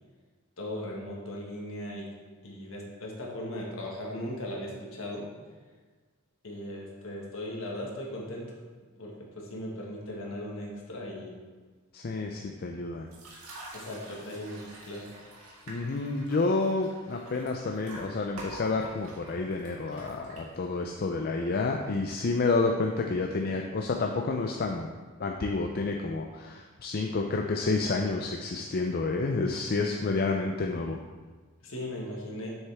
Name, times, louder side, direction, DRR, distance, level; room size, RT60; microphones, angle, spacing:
voice 1, 0.6-2.0 2.4-5.2 6.4-8.4 9.0-11.3 13.7-15.1 31.6-32.5, left 1 dB, 65° left, -2 dB, 1.7 m, -38 dB
voice 2, 11.9-13.1 15.7-24.9 25.2-31.0, left 3 dB, 45° left, 2 dB, 0.5 m, -29 dB
sound 1, 13.1-20.8, right 1 dB, 90° right, 1.9 m, -47 dB
7.1 x 6.7 x 3.5 m, 1.4 s
head